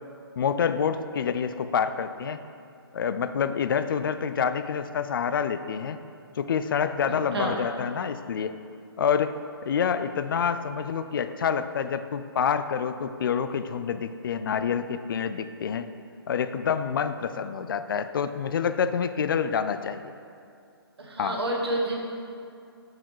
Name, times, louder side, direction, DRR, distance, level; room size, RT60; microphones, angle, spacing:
voice 1, 0.4-2.4 2.9-6.0 6.4-8.5 9.0-15.9 16.3-20.1 21.2-21.4, left 7 dB, 55° left, 11 dB, 0.4 m, -27 dB
voice 2, 7.1-7.6 21.0-22.0, right 1 dB, 80° right, 0 dB, 1.2 m, -29 dB
7.5 x 4.8 x 4.6 m, 2.4 s
hypercardioid pair, 165°, 13 cm